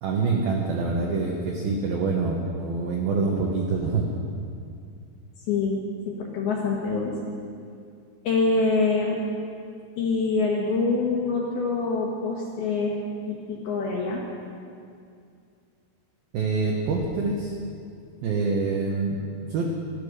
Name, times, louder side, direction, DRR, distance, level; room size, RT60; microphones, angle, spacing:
voice 1, 0.0-4.1 16.3-17.5 18.2-19.7, right 4 dB, 80° right, 0 dB, 2.1 m, -26 dB
voice 2, 5.5-7.3 8.2-9.2 10.0-13.0 13.3-14.2, left 3 dB, 70° left, -2 dB, 2.5 m, -25 dB
13.5 x 12.5 x 6.4 m, 2.4 s
omnidirectional pair, 6.0 m